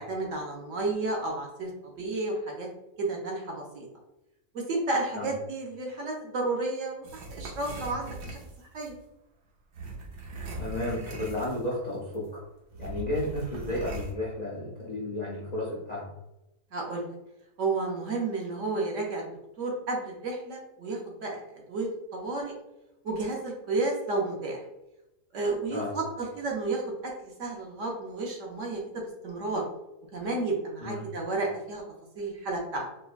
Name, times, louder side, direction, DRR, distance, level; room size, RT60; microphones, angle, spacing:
voice 1, 0.0-2.7 3.0-3.9 4.5-8.4 8.7-9.0 16.7-17.1 17.6-19.2 19.6-22.5 23.0-24.6 25.3-29.6 30.1-31.8 32.2-32.9, right 3 dB, 65° right, -1 dB, 0.9 m, -32 dB
sound 1, 7.0-8.9 9.7-11.9 12.1-12.3 12.7-14.1, right 2 dB, 80° right, 1.3 m, -39 dB
voice 2, 10.6-12.4 12.8-16.1 25.7-25.9 30.8-31.1, left 1 dB, 60° left, -4 dB, 0.4 m, -33 dB
4.6 x 2.1 x 2.4 m, 0.94 s
omnidirectional pair, 1.7 m